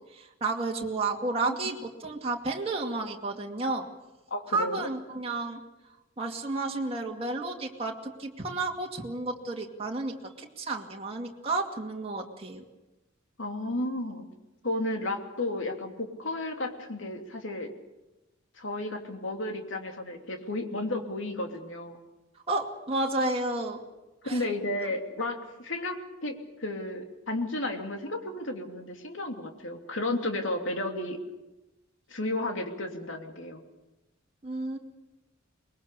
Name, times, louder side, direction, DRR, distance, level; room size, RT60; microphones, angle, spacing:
voice 1, 0.1-3.9 4.5-5.6 6.2-12.6 22.5-23.8 24.2-24.4 34.4-34.8, right 3 dB, 30° right, 0 dB, 2.3 m, -31 dB
voice 2, 4.3-4.9 13.4-14.2 14.6-17.7 18.6-22.0 24.2-31.2 32.1-33.6, left 1 dB, 70° left, 4 dB, 2.9 m, -33 dB
24.0 x 21.0 x 6.8 m, 1.0 s
head